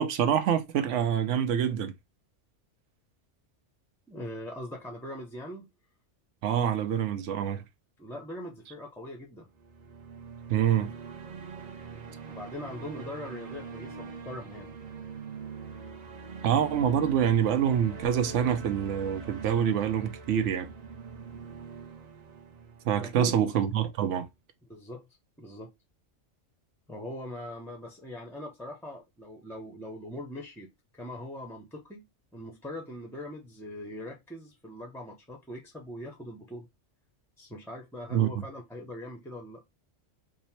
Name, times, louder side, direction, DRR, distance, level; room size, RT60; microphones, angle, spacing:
voice 1, 0.0-1.9 6.4-7.6 10.5-10.9 16.4-20.7 22.9-24.3 38.1-38.3, right 9 dB, 85° right, 1.0 m, -26 dB
voice 2, 4.1-5.7 8.0-9.5 11.7-12.0 12.3-14.7 23.0-23.4 24.7-25.1 25.4-25.7 26.9-32.1 32.3-36.7 37.4-39.6, left 1 dB, 5° left, 0.4 m, -41 dB
sound 1, 9.5-23.7, right 5 dB, 50° right, 0.6 m, -43 dB
3.6 x 2.1 x 4.2 m
omnidirectional pair, 1.2 m